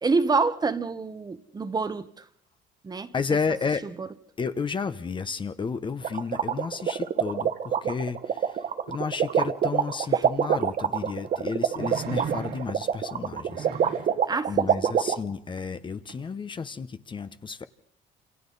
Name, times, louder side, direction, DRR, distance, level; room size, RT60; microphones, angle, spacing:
voice 1, 0.0-2.2 2.8-3.1 4.0-4.1 10.1-10.2 14.3-14.9, right 4 dB, 25° right, 1.1 m, -27 dB
voice 2, 3.1-3.9 4.4-14.1 14.5-17.7, left 5 dB, 30° left, 0.9 m, -32 dB
sound 1, 6.0-15.1, right 8 dB, 50° right, 1.5 m, -25 dB
sound 2, 10.4-10.5 11.7-12.9 13.5-14.2 16.1-16.2, right 6 dB, 75° right, 2.4 m, -36 dB
28.5 x 27.5 x 4.1 m
cardioid pair, 110°, 17 cm